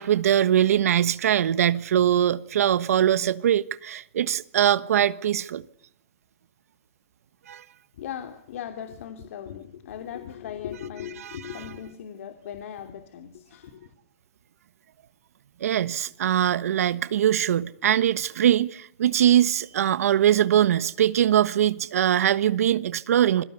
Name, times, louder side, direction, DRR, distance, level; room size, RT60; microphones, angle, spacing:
voice 1, 0.0-5.6 7.5-7.6 11.2-11.6 15.6-23.4, right 10 dB, 75° right, 1.3 m, -22 dB
voice 2, 8.0-13.9, left 9 dB, 65° left, 3.0 m, -38 dB
27.5 x 22.5 x 8.2 m
hypercardioid pair, 160°, 8 cm